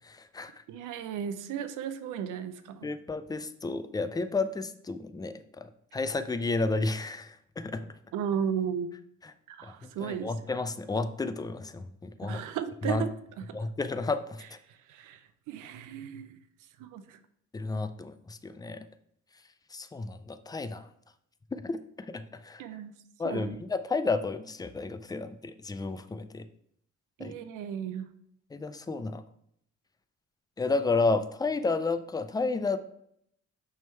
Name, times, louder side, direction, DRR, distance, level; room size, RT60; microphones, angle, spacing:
voice 1, 0.1-0.5 2.8-7.9 9.8-12.4 12.8-13.0 13.5-14.6 17.5-18.8 19.7-20.9 21.5-22.6 23.2-26.5 27.2-27.4 28.5-29.2 30.6-32.8, left 3 dB, 15° left, 11 dB, 0.4 m, -32 dB
voice 2, 0.7-2.9 8.1-8.9 9.5-10.3 12.2-13.1 14.7-15.2 15.5-16.4 16.8-17.2 22.6-22.9 23.2-23.6 27.2-28.1, right 8 dB, 85° right, 11 dB, 0.6 m, -35 dB
6.2 x 3.5 x 4.4 m, 0.72 s
cardioid pair, 90°, 30 cm